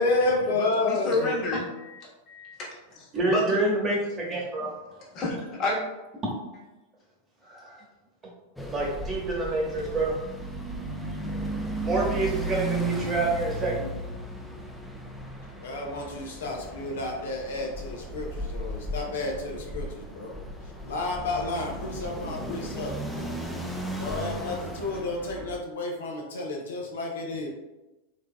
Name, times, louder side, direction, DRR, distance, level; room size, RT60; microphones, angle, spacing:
voice 1, 0.0-1.3 15.6-20.4 20.8-23.0 24.0-27.5, left 2 dB, 75° left, 0 dB, 0.6 m, -30 dB
voice 2, 0.8-3.6 5.1-5.8 9.9-10.0 12.0-12.1, left 2 dB, 35° left, -4 dB, 1.2 m, -30 dB
voice 3, 3.1-4.7 7.5-7.8 8.7-10.2 11.8-13.9, right 2 dB, 25° right, -3 dB, 1.2 m, -27 dB
sound 1, 8.6-25.6, right 1 dB, 5° left, 0.5 m, -35 dB
3.7 x 3.2 x 2.2 m, 1.1 s
hypercardioid pair, 95°, 0 cm